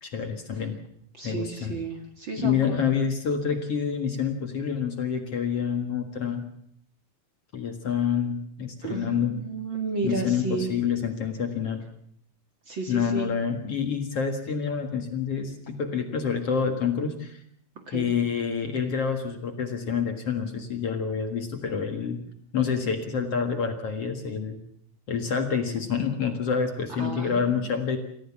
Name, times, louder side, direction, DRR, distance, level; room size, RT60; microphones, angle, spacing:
voice 1, 0.0-0.8 1.2-1.8 2.4-6.4 7.5-9.4 10.0-11.8 12.9-17.4 17.9-22.2 22.5-24.6 25.1-28.0, left 6 dB, 50° left, 5 dB, 2.4 m, -27 dB
voice 2, 1.2-2.6 8.8-10.7 12.7-13.3 17.9-18.1 27.0-27.6, right 4 dB, 40° right, 4 dB, 2.4 m, -32 dB
28.0 x 14.5 x 7.3 m, 0.68 s
omnidirectional pair, 3.9 m